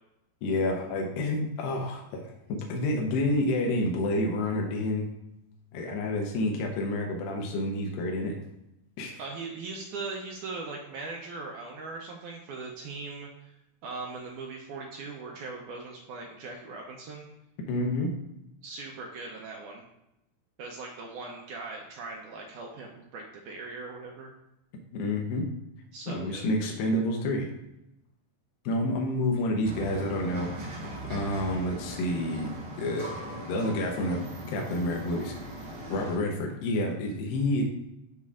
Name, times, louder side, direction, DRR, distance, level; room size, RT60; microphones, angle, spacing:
voice 1, 0.4-2.2 2.5-5.1 5.7-8.3 9.0-9.2 17.7-18.1 24.9-25.4 26.1-27.5 28.7-30.5 31.1-34.2 34.5-35.3 35.9-37.6, left 1 dB, 80° left, 1 dB, 2.6 m, -29 dB
voice 2, 9.2-13.5 13.8-17.3 18.6-19.8 20.6-24.3 25.9-26.5, right 3 dB, 75° right, 0 dB, 1.9 m, -40 dB
sound 1, 29.6-36.2, right 1 dB, 60° right, 4.1 m, -40 dB
11.5 x 4.2 x 2.4 m, 0.86 s
omnidirectional pair, 4.2 m